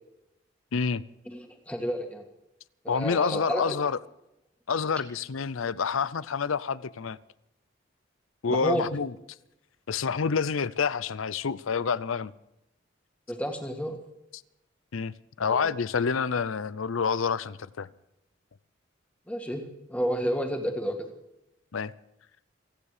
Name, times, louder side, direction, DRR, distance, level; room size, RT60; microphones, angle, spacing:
voice 1, 0.7-1.0 2.9-4.0 4.7-7.2 8.4-9.1 9.9-12.3 14.9-17.9 21.7-21.9, left 5 dB, 85° left, 0.6 m, -28 dB
voice 2, 1.3-2.2 2.8-3.8 8.6-8.9 13.3-14.0 15.4-15.7 19.3-21.1, equal, 5° left, 2.0 m, -31 dB
28.5 x 9.8 x 5.0 m
head